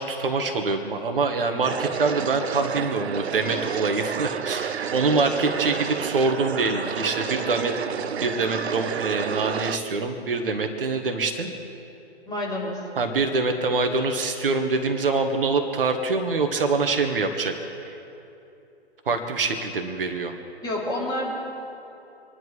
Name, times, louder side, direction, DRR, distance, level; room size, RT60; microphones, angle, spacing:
voice 1, 0.0-7.7 8.2-11.5 13.0-17.9 19.0-20.3, right 3 dB, 55° right, 5 dB, 1.7 m, -25 dB
sound 1, 1.6-9.8, right 7 dB, 75° right, 0.5 m, -30 dB
voice 2, 12.3-12.9 20.6-21.3, left 1 dB, 10° left, -5 dB, 4.2 m, -28 dB
26.0 x 11.0 x 5.1 m, 2.8 s
figure-of-eight pair, 125°, 32 cm